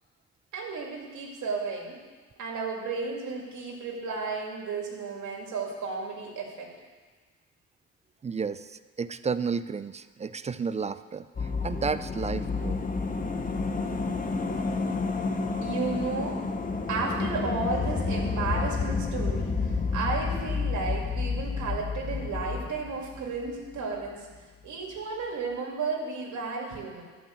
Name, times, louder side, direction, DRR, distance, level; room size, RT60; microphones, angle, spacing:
voice 1, 0.5-2.0 2.4-6.7 15.6-16.4 16.9-24.3 24.6-27.0, right 4 dB, 70° right, -1 dB, 2.5 m, -33 dB
voice 2, 8.2-12.8, right 5 dB, 25° right, 14 dB, 0.3 m, -32 dB
sound 1, 11.3-23.8 24.0-24.1, left 4 dB, 25° left, 1.0 m, -30 dB
11.5 x 5.2 x 7.8 m, 1.4 s
cardioid pair, 90°, 30 cm